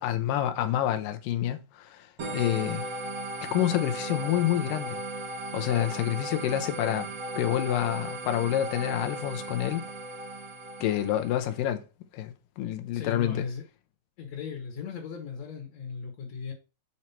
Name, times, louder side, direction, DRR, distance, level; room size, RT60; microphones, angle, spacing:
voice 1, 0.0-2.8 3.4-5.0 5.5-7.1 7.4-9.8 10.8-11.8 12.1-13.5, left 12 dB, 80° left, 2.5 m, -28 dB
sound 1, 2.2-11.6, right 2 dB, 50° right, 1.5 m, -36 dB
voice 2, 12.9-13.6 14.2-16.5, left 6 dB, 60° left, 2.3 m, -37 dB
7.2 x 4.5 x 4.3 m
omnidirectional pair, 3.8 m